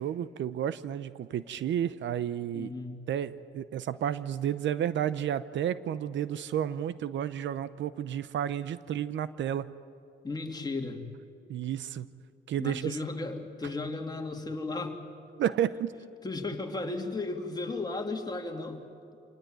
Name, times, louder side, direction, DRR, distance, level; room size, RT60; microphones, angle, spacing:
voice 1, 0.0-2.7 3.1-9.7 11.5-12.1 12.5-13.0 15.4-15.9, right 10 dB, 70° right, 15 dB, 0.8 m, -31 dB
voice 2, 2.5-3.0 10.2-11.0 12.6-15.0 16.2-18.8, left 3 dB, 20° left, 3 dB, 2.8 m, -35 dB
26.0 x 18.0 x 9.3 m, 2.6 s
cardioid pair, 90°, 20 cm